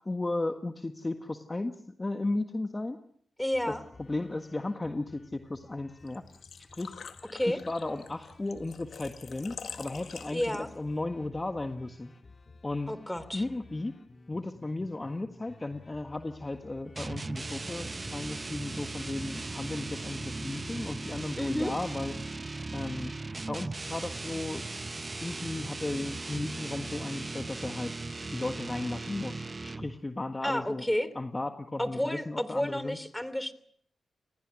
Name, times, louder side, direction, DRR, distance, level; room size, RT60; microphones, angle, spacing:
voice 1, 0.0-3.0 3.7-6.2 6.7-7.0 7.5-12.1 12.6-12.9 13.3-13.9 14.3-22.1 22.7-23.1 23.5-24.6 25.2-28.0 28.3-30.8 31.1-33.0, left 2 dB, 25° left, 6 dB, 1.6 m, -35 dB
voice 2, 3.4-3.8 7.3-7.6 10.3-10.7 12.9-13.4 21.4-21.7 30.4-31.1 31.8-33.5, left 1 dB, 10° left, 15 dB, 3.0 m, -31 dB
sound 1, 3.5-22.4, left 3 dB, 40° left, 3.6 m, -54 dB
Engine / Trickle dribble / Fill (with liquid), 6.1-10.9, left 6 dB, 70° left, 1.8 m, -46 dB
sound 2, 17.0-30.0, right 3 dB, 30° right, 0.9 m, -38 dB
27.0 x 20.5 x 6.3 m, 0.63 s
cardioid pair, 55°, 0 cm